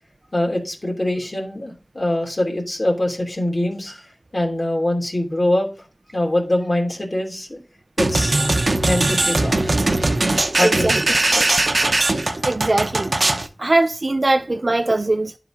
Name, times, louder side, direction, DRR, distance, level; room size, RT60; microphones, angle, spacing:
voice 1, 0.3-4.0 4.3-5.7 6.1-7.6 8.0-8.4 8.8-9.7 10.5-11.4, left 1 dB, 55° left, 2.8 m, -23 dB
sound 1, 8.0-13.5, right 2 dB, 75° right, 0.8 m, -20 dB
voice 2, 10.6-11.0 12.4-13.1 13.6-15.3, right 2 dB, 60° right, 0.4 m, -20 dB
12.0 x 4.1 x 3.8 m
wide cardioid pair, 50°, 0 cm